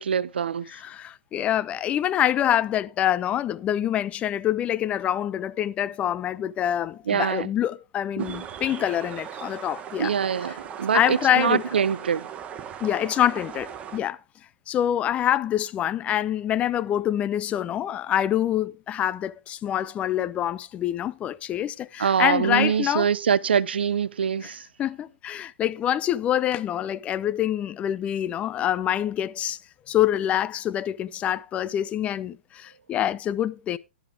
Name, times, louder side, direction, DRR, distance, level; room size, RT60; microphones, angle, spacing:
voice 1, 0.0-0.7 7.1-7.5 8.2-8.4 10.0-12.3 22.0-24.6, right 7 dB, 65° right, 0.6 m, -24 dB
voice 2, 0.7-10.1 10.5-10.6 10.9-11.6 12.8-14.2 14.7-23.1 24.4-24.5 24.8-29.6 29.9-33.8, left 11 dB, 20° left, 0.5 m, -26 dB
sound 1, 8.2-14.0, right 8 dB, 20° right, 1.1 m, -39 dB
12.5 x 10.0 x 3.4 m
figure-of-eight pair, 110°, 6 cm